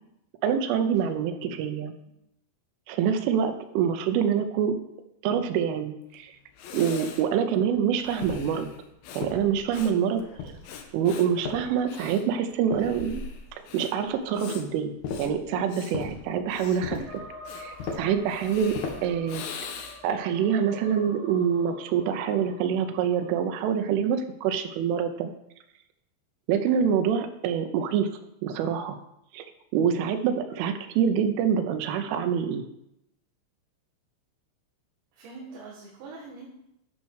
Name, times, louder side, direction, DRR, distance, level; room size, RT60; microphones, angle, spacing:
voice 1, 0.4-1.9 2.9-4.8 5.2-6.3 6.7-8.7 9.2-10.5 10.9-13.2 13.5-14.9 15.2-17.2 17.6-19.7 20.0-25.3 26.5-28.1 28.4-29.0 29.3-29.4 29.7-32.6, right 8 dB, 90° right, 7 dB, 3.3 m, -26 dB
voice 2, 2.9-3.4 17.8-18.2 30.5-30.6 35.1-36.5, right 4 dB, 70° right, -5 dB, 4.0 m, -45 dB
Breathing, 6.1-6.2 6.5-20.2, left 6 dB, 80° left, 2.1 m, -43 dB
sound 1, 8.2-8.6 9.2-9.9 10.4-10.9 11.4-12.1 12.7-13.4 15.0-15.4 15.9-16.2 16.8-17.2 17.8-18.2 18.7-19.2, left 5 dB, 65° left, 1.9 m, -36 dB
sound 2, 17.0-23.4, equal, 5° left, 3.1 m, -46 dB
11.5 x 5.5 x 6.3 m, 0.81 s
omnidirectional pair, 5.5 m